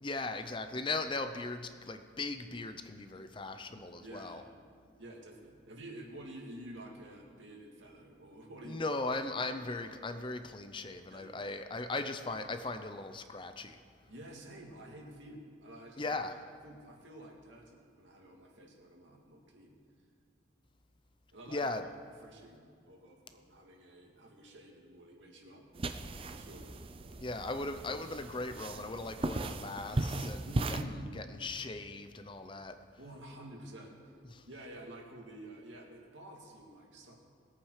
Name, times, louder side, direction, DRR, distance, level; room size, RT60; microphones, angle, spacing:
voice 1, 0.0-4.4 8.6-13.8 16.0-16.3 21.5-21.8 27.2-32.7 34.3-34.4, left 2 dB, 25° left, 9 dB, 0.5 m, -38 dB
voice 2, 4.0-4.6 5.0-8.9 11.1-11.4 14.1-19.8 21.3-21.7 22.2-25.6 26.3-26.7 30.5-31.1 33.0-34.0 34.5-37.2, right 1 dB, 70° right, 0 dB, 2.4 m, -50 dB
sound 1, 25.7-30.8, right 2 dB, 30° right, 0.4 m, -37 dB
20.5 x 8.6 x 4.9 m, 2.3 s
head